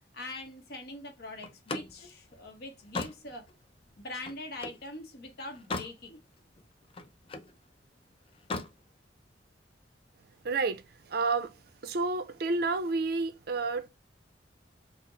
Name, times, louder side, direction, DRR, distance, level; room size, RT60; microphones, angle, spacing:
voice 1, 0.1-3.5 4.0-6.2, left 2 dB, 60° left, 1.0 m, -43 dB
Slam, 1.4-4.9 5.3-6.0 6.4-7.5 8.3-8.8, left 3 dB, 30° left, 0.5 m, -39 dB
voice 2, 10.4-10.8 11.1-11.5 11.8-13.9, right 3 dB, 55° right, 0.5 m, -30 dB
4.1 x 2.0 x 3.9 m
head